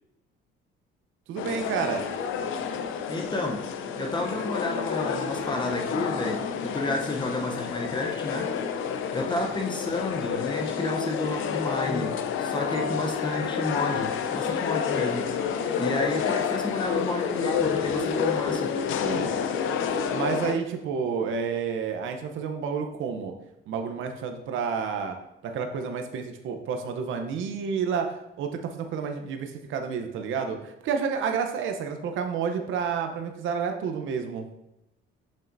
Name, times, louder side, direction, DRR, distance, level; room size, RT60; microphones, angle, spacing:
voice 1, 1.3-2.0 12.8-12.9 19.0-19.3 20.1-23.3 23.7-25.2 25.4-34.5, right 6 dB, 70° right, 5 dB, 0.8 m, -30 dB
sound 1, 1.4-20.6, left 6 dB, 70° left, 0.6 m, -29 dB
voice 2, 3.1-3.7 4.0-8.5 9.1-15.3 15.8-18.7, left 2 dB, 20° left, 2 dB, 0.7 m, -31 dB
7.3 x 5.5 x 2.6 m, 0.87 s
cardioid pair, 125°, 21 cm